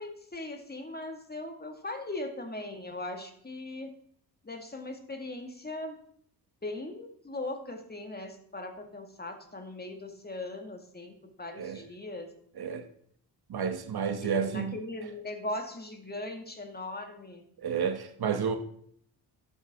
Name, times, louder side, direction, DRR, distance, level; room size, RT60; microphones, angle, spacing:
voice 1, 0.0-3.9 4.4-6.0 6.6-12.3 14.2-17.4, left 2 dB, 20° left, 2.1 m, -39 dB
voice 2, 13.5-14.8 17.6-18.6, right 6 dB, 60° right, 1.4 m, -30 dB
12.5 x 7.3 x 3.7 m
cardioid pair, 65°, 44 cm